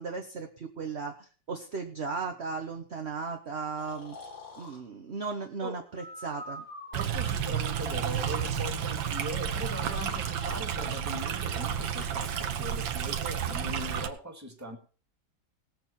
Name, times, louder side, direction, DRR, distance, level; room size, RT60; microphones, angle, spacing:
voice 1, 0.0-4.2 4.6-6.6, right 4 dB, 40° right, 4 dB, 1.2 m, -36 dB
Breathing, 3.8-4.8 5.9-7.1 7.7-8.6 9.5-10.8 11.4-12.2, left 2 dB, 75° left, 4.8 m, -46 dB
voice 2, 6.9-14.8, equal, 10° right, 2 dB, 2.0 m, -40 dB
Stream, 6.9-14.1, right 8 dB, 80° right, 1.8 m, -31 dB
19.5 x 8.0 x 4.4 m, 0.38 s
omnidirectional pair, 2.1 m